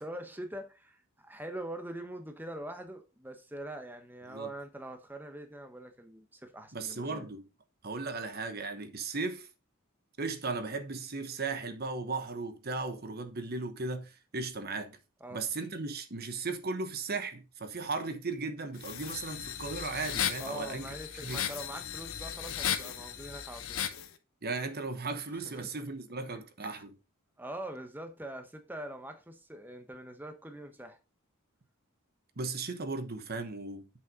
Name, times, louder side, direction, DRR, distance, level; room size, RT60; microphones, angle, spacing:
voice 1, 0.0-7.3 15.2-15.4 20.4-23.8 25.3-25.7 26.3-26.8 27.4-31.0, right 1 dB, 10° right, 1.0 m, -43 dB
voice 2, 6.7-7.5 7.8-9.5 10.2-15.0 15.3-20.9 21.2-21.4 24.4-26.9 32.4-33.9, right 3 dB, 45° right, 1.0 m, -36 dB
sound 1, 18.8-24.1, left 9 dB, 70° left, 1.0 m, -36 dB
8.3 x 6.2 x 3.8 m
head